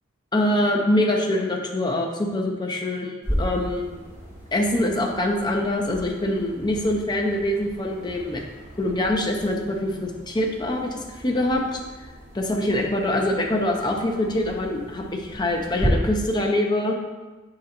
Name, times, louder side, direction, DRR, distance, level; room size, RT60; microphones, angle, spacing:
voice 1, 0.3-4.0 4.5-8.4 8.8-11.8 12.3-16.9, left 1 dB, 25° left, 1 dB, 0.6 m, -24 dB
sound 1, 3.2-15.9, equal, 15° right, 2.0 m, -36 dB
6.0 x 3.9 x 4.3 m, 1.2 s
head